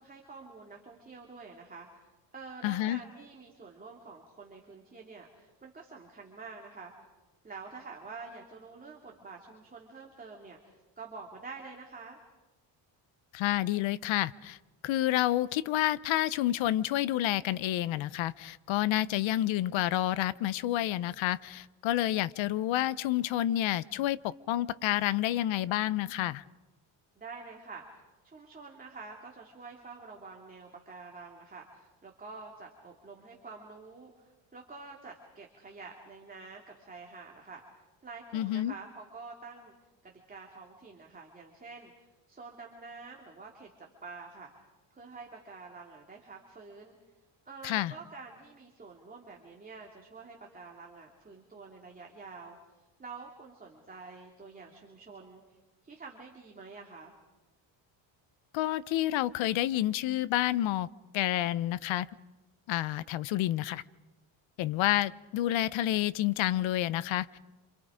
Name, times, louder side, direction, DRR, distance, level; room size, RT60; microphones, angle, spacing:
voice 1, 0.0-6.9 7.4-12.2 27.2-39.7 40.0-44.5 44.9-46.9 47.4-52.6 53.0-55.6 55.8-57.1, right 4 dB, 20° right, 2.8 m, -48 dB
voice 2, 2.6-3.0 13.3-14.6 14.8-26.4 38.3-38.7 47.6-47.9 58.5-60.9 61.1-62.1 62.7-63.8 64.6-67.4, left 14 dB, 75° left, 0.9 m, -29 dB
28.0 x 27.5 x 5.1 m
cardioid pair, 145°, 46 cm